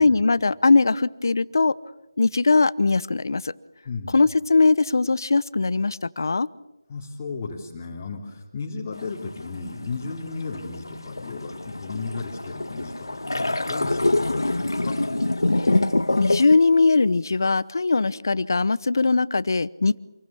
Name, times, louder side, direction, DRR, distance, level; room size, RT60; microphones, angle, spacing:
voice 1, 0.0-1.7 2.2-3.5 4.1-6.5 15.6-15.7 16.2-20.0, left 3 dB, 60° left, 18 dB, 1.0 m, -20 dB
voice 2, 3.8-4.3 6.9-13.1 13.3-15.0, left 4 dB, 25° left, -3 dB, 3.3 m, -35 dB
sound 1, 8.9-16.6, left 2 dB, 85° left, 1.9 m, -26 dB
27.5 x 22.5 x 7.2 m, 0.95 s
figure-of-eight pair, 165°, 2 cm